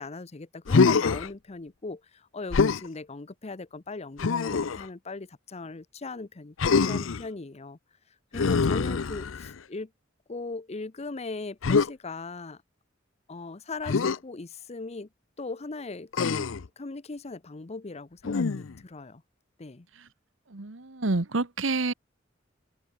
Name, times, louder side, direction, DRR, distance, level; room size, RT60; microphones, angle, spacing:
voice 1, 0.0-7.8 8.3-9.9 10.3-12.6 13.3-15.1 15.4-19.2 19.6-19.9, left 3 dB, 35° left, 0.7 m, -39 dB
Human voice, 0.7-1.3 2.5-2.9 4.2-4.9 6.6-7.2 8.3-9.6 11.6-11.9 13.9-14.2 16.1-16.7 18.2-18.8, left 4 dB, 90° left, 0.6 m, -24 dB
voice 2, 20.5-21.9, right 3 dB, 75° right, 1.3 m, -28 dB
head